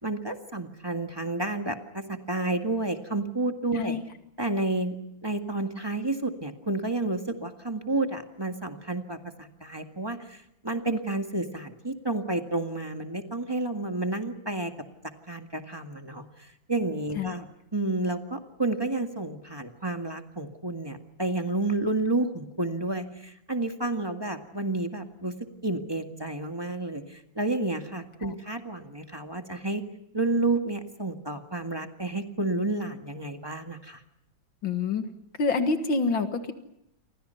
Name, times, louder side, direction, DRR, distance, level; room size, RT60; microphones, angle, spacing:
voice 1, 0.0-3.9 4.4-5.0 5.2-10.4 10.6-14.7 15.3-17.4 17.7-25.3 25.6-29.8 30.1-34.0, right 2 dB, 15° right, 5 dB, 1.8 m, -30 dB
voice 2, 34.6-35.0 35.4-36.5, left 4 dB, 75° left, 7 dB, 2.4 m, -27 dB
29.0 x 25.5 x 5.7 m, 0.80 s
omnidirectional pair, 2.1 m